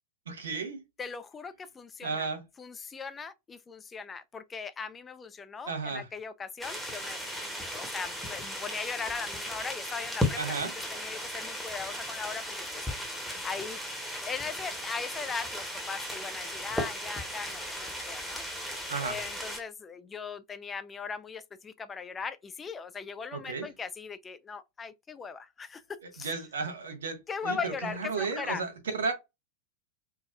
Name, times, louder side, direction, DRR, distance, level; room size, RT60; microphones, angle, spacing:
voice 1, 0.3-0.8 2.0-2.4 5.6-6.1 10.4-10.7 18.9-19.2 23.3-23.7 26.0-29.1, right 4 dB, 65° right, 0.7 m, -34 dB
voice 2, 1.0-2.3 2.6-10.6 10.9-13.8 14.3-18.4 19.0-25.8 26.1-26.4 27.3-28.6, left 5 dB, 20° left, 0.3 m, -39 dB
sound 1, 6.6-19.6, left 1 dB, ahead, 0.8 m, -36 dB
3.5 x 2.1 x 2.3 m
figure-of-eight pair, 90°, 0 cm